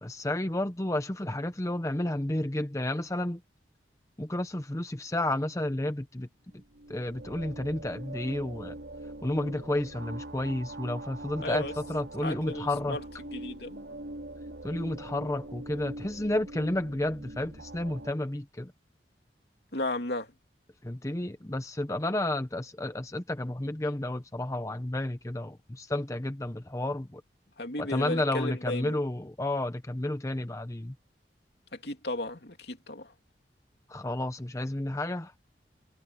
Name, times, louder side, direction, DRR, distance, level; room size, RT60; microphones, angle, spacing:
voice 1, 0.0-3.4 4.2-6.3 6.9-8.8 9.2-13.0 14.6-18.7 20.8-27.2 27.8-30.9 33.9-35.3, left 1 dB, 15° left, 0.8 m, -31 dB
sound 1, 6.5-18.1, right 1 dB, 75° right, 3.2 m, -43 dB
voice 2, 11.4-11.7 12.2-13.0 13.3-13.8 19.7-20.3 27.6-29.0 31.8-33.1, left 2 dB, 65° left, 2.9 m, -34 dB
head